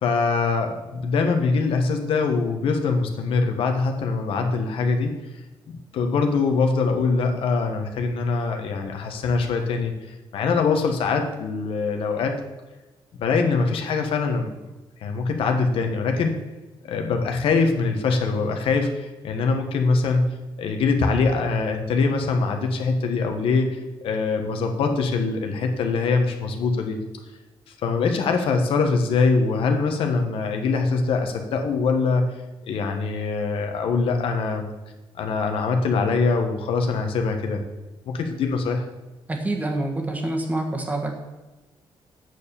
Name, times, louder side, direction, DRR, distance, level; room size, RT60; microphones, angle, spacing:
voice 1, 0.0-5.1 5.7-9.9 10.3-12.4 13.2-14.5 15.0-16.4 16.8-20.3 20.6-27.0 27.8-32.2 32.7-34.7 35.2-37.6 38.1-38.8, left 4 dB, 85° left, 4 dB, 1.4 m, -23 dB
voice 2, 39.3-41.1, right 2 dB, 15° right, 3 dB, 1.5 m, -26 dB
8.1 x 7.1 x 7.0 m, 1.1 s
wide cardioid pair, 155°, 9 cm